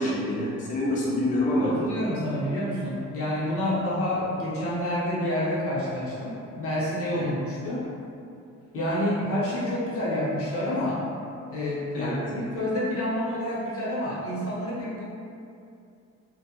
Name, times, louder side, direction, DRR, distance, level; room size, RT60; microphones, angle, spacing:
voice 1, 0.0-1.7 7.2-7.3 11.9-12.2, left 1 dB, 25° left, -6 dB, 0.4 m, -26 dB
voice 2, 1.6-7.8 8.7-11.0 11.5-15.0, left 1 dB, 50° left, -7 dB, 0.8 m, -28 dB
2.1 x 2.1 x 2.8 m, 2.5 s
cardioid pair, 90°, 30 cm